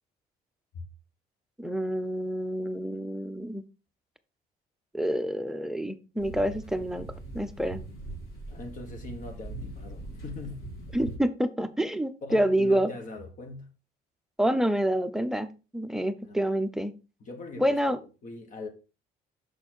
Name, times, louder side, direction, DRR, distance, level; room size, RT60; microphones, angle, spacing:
voice 1, 1.6-3.6 4.9-7.1 7.3-7.8 10.9-12.9 14.4-16.9 17.6-18.0, right 1 dB, 5° right, 0.6 m, -27 dB
sound 1, 6.2-11.2, right 2 dB, 70° left, 3.7 m, -41 dB
voice 2, 8.5-10.7 12.2-13.7 16.2-16.4 17.2-18.7, left 2 dB, 50° left, 1.4 m, -41 dB
6.5 x 4.2 x 4.5 m
cardioid pair, 110°, 17 cm